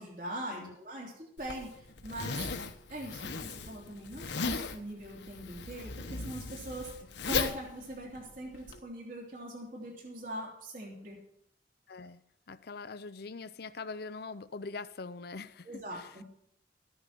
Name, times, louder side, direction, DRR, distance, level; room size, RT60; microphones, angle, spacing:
voice 1, 0.0-2.5 2.9-6.9 7.2-11.2 15.6-16.2, right 1 dB, 50° right, 3.3 m, -42 dB
Zipper (clothing), 1.4-8.8, left 4 dB, 75° left, 1.1 m, -37 dB
voice 2, 11.9-12.2 12.5-15.7 15.9-16.1, left 4 dB, 60° left, 0.6 m, -43 dB
14.0 x 10.0 x 5.9 m
head